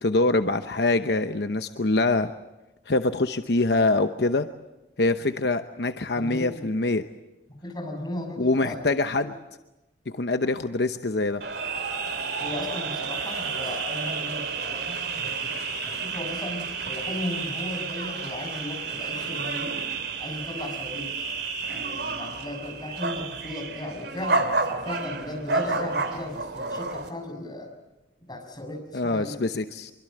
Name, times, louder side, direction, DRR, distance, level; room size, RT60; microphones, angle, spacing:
voice 1, 0.0-2.3 2.9-4.5 5.0-7.0 8.4-9.3 10.1-11.4 28.9-29.9, left 2 dB, 70° left, 8 dB, 0.9 m, -24 dB
voice 2, 6.1-6.7 7.5-8.9 12.4-19.8 20.2-21.2 21.7-27.7 28.3-29.4, left 1 dB, 25° left, 2 dB, 6.7 m, -36 dB
sound 1, 11.4-27.1, right 4 dB, 70° right, 2.8 m, -31 dB
25.5 x 24.0 x 7.7 m, 1.0 s
head